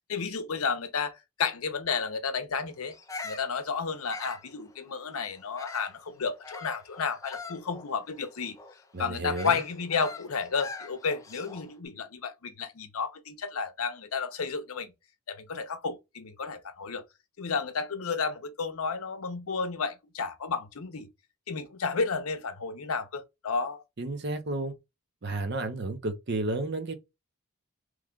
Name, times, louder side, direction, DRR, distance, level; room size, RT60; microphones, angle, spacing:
voice 1, 0.1-2.9 3.2-8.6 9.0-14.9 15.3-17.0 17.4-21.1 21.5-23.8, left 5 dB, 75° left, 0.7 m, -32 dB
Bird vocalization bird call bird song, 2.9-6.0 6.4-11.7, left 3 dB, 15° left, 0.3 m, -43 dB
voice 2, 8.9-9.6 24.0-24.7 25.2-26.9, right 2 dB, 50° right, 0.7 m, -32 dB
3.1 x 2.2 x 3.7 m
head